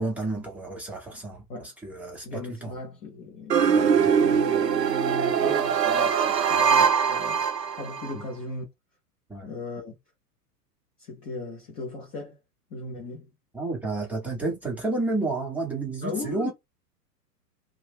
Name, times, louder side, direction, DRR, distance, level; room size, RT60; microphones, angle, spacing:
voice 1, 0.0-1.4 1.8-2.7 3.5-4.4 8.1-8.3 9.3-9.5 13.5-16.5, right 2 dB, 5° right, 0.8 m, -31 dB
voice 2, 2.2-7.4 7.8-8.7 9.4-10.0 11.0-12.4 12.7-13.3 16.0-16.5, left 3 dB, 15° left, 0.5 m, -37 dB
sound 1, 3.5-8.1, right 7 dB, 85° right, 0.6 m, -22 dB
2.7 x 2.1 x 3.3 m
figure-of-eight pair, 100°, 49 cm